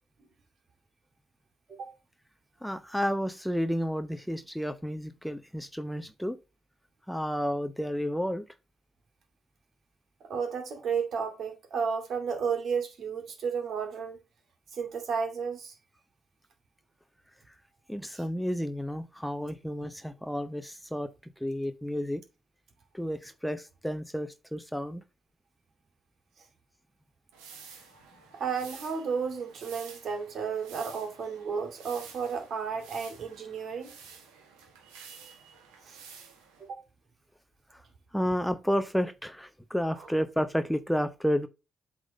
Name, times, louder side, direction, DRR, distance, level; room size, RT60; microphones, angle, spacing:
voice 1, 2.6-6.4 7.1-8.4 17.5-17.6 17.9-22.2 22.9-25.0 37.7-37.8 38.1-41.5, equal, ahead, 0.8 m, -31 dB
voice 2, 10.3-14.2 14.7-15.7 28.3-33.9 35.9-36.0 36.7-36.8 39.9-40.1, right 6 dB, 60° right, 2.4 m, -32 dB
sound 1, 27.3-36.7, right 6 dB, 80° right, 1.6 m, -51 dB
8.0 x 3.8 x 5.2 m
hypercardioid pair, 45°, 0 cm